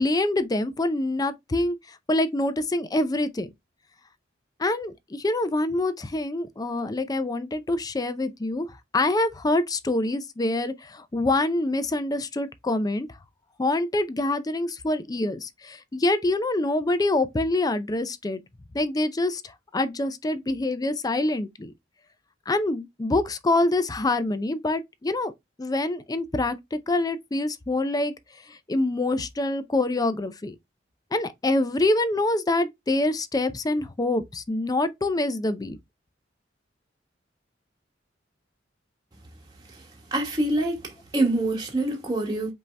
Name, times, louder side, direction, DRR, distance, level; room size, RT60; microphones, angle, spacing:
voice 1, 0.0-3.5 4.6-8.7 8.9-13.1 13.6-18.4 18.7-21.7 22.5-25.3 25.6-28.1 28.5-30.5 31.1-35.8, left 2 dB, 20° left, 0.4 m, -25 dB
voice 2, 40.1-42.5, right 2 dB, 20° right, 1.1 m, -25 dB
5.3 x 2.7 x 3.2 m
head